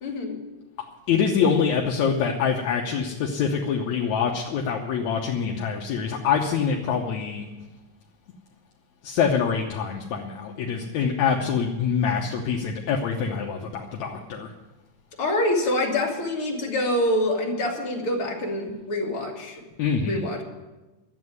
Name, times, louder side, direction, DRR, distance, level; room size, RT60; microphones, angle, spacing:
voice 1, 0.0-0.4 15.2-19.6 20.0-20.4, left 1 dB, 45° left, 0 dB, 3.1 m, -26 dB
voice 2, 1.1-7.5 9.0-14.5 19.8-20.2, left 6 dB, 70° left, 0 dB, 2.2 m, -25 dB
12.5 x 8.7 x 9.5 m, 1.1 s
omnidirectional pair, 3.5 m